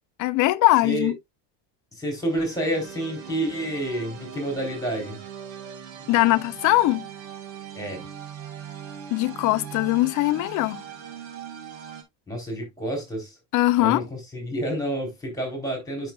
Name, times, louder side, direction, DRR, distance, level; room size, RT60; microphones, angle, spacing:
voice 1, 0.2-1.2 6.1-7.1 9.1-10.8 13.5-14.0, left 18 dB, 40° left, 0.5 m, -21 dB
voice 2, 2.0-5.2 7.8-8.0 12.3-13.3 13.8-16.1, right 1 dB, 5° left, 3.7 m, -29 dB
sound 1, 2.1-12.0, right 9 dB, 70° right, 2.3 m, -40 dB
8.8 x 5.7 x 2.3 m
cardioid pair, 150°, 49 cm